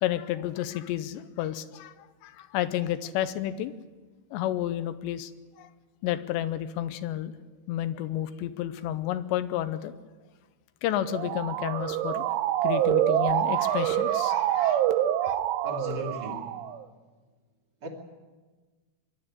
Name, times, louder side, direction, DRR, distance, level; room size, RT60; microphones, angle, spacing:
voice 1, 0.0-3.7 4.3-5.3 5.6-5.7 6.0-7.3 7.7-9.9 10.8-12.2 12.6-14.8 15.2-15.4, left 12 dB, 80° left, 12 dB, 2.8 m, -31 dB
Motor vehicle (road) / Siren, 11.0-16.8, right 11 dB, 80° right, 3.3 m, -26 dB
voice 2, 15.6-16.6 17.8-17.9, left 1 dB, 30° right, 0 dB, 2.5 m, -36 dB
23.0 x 12.5 x 9.9 m, 1.3 s
omnidirectional pair, 5.5 m